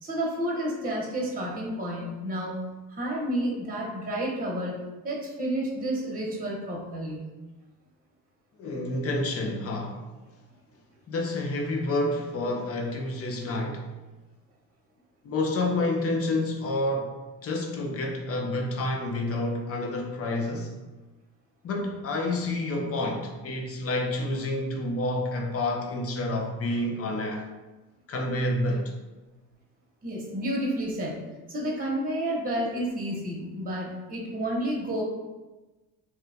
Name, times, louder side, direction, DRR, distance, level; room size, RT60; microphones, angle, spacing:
voice 1, 0.0-2.6 2.9-4.8 5.0-7.2 30.0-31.2 31.5-35.0, right 1 dB, 25° right, -2 dB, 1.0 m, -30 dB
voice 2, 8.6-10.0 11.1-13.8 15.2-20.7 21.6-27.5 28.1-28.9, left 2 dB, 40° left, 1 dB, 0.7 m, -29 dB
2.9 x 2.4 x 3.4 m, 1.1 s
cardioid pair, 100°, 36 cm